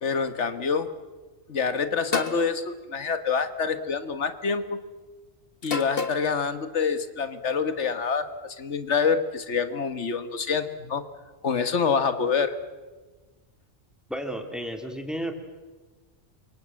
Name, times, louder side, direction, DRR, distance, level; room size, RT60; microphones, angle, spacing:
voice 1, 0.0-0.9 1.5-4.8 5.6-11.0 11.4-12.6, left 5 dB, 85° left, 10 dB, 1.6 m, -26 dB
sound 1, 2.1-2.4 3.6-4.0 5.6-6.3, left 4 dB, 55° left, 1.8 m, -30 dB
voice 2, 14.1-15.3, equal, ahead, 6 dB, 2.7 m, -32 dB
28.0 x 24.5 x 7.6 m, 1.3 s
omnidirectional pair, 1.2 m